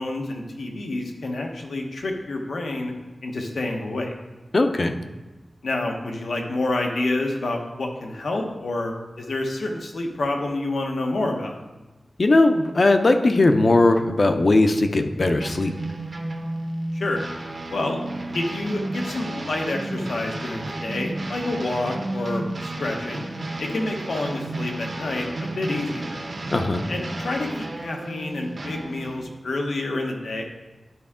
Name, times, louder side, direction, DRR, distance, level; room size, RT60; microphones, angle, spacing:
voice 1, 0.0-2.9 3.2-4.1 5.6-11.6 16.9-17.2 17.7-18.0 18.3-23.2 23.6-26.2 26.9-30.4, left 2 dB, 90° left, 2 dB, 1.1 m, -28 dB
voice 2, 4.5-4.9 12.2-15.7 26.5-26.8, left 2 dB, 50° left, 7 dB, 0.6 m, -18 dB
sound 1, 15.4-29.2, right 2 dB, 50° right, 1.0 m, -32 dB
11.0 x 4.7 x 3.7 m, 1.2 s
wide cardioid pair, 100°, 0 cm